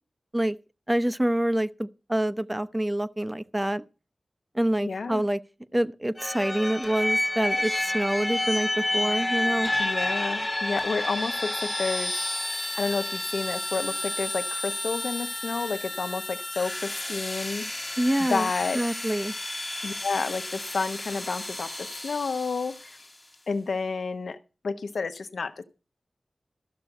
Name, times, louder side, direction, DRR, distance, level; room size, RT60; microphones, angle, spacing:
voice 1, 0.9-3.8 4.5-5.4 5.7-9.7 18.0-18.5 18.7-19.3, right 1 dB, 15° right, 0.8 m, -26 dB
voice 2, 4.8-5.2 9.8-12.1 12.8-17.7 18.2-18.8 19.8-23.0 23.5-24.4 24.6-25.6, left 4 dB, 85° left, 1.0 m, -30 dB
sound 1, 6.2-22.9, left 1 dB, 25° left, 1.0 m, -30 dB
13.5 x 6.1 x 7.7 m
cardioid pair, 55°, 0 cm